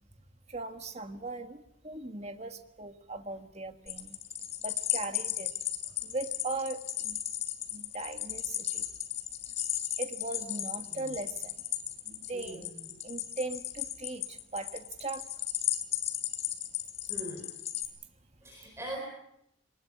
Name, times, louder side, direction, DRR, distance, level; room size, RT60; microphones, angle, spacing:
voice 1, 0.5-4.2 4.6-5.5 6.0-7.2 7.7-8.9 10.0-11.5 12.1-12.7 13.0-15.2, right 2 dB, 35° right, 7 dB, 1.5 m, -39 dB
sound 1, 3.9-17.9, left 12 dB, 35° left, 2.8 m, -35 dB
voice 2, 12.3-13.0 17.1-17.5 18.4-19.0, right 1 dB, 15° right, 0 dB, 4.5 m, -42 dB
23.0 x 20.0 x 8.5 m, 0.78 s
head